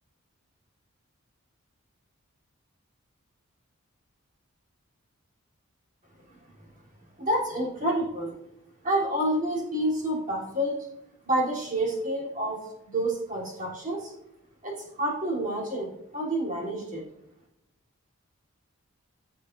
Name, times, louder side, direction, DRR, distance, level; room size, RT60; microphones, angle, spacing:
voice 1, 7.2-8.4 8.8-10.9 11.3-14.1 14.6-17.0, right 1 dB, 40° right, -5 dB, 3.5 m, -28 dB
15.5 x 6.6 x 2.7 m, 0.85 s
head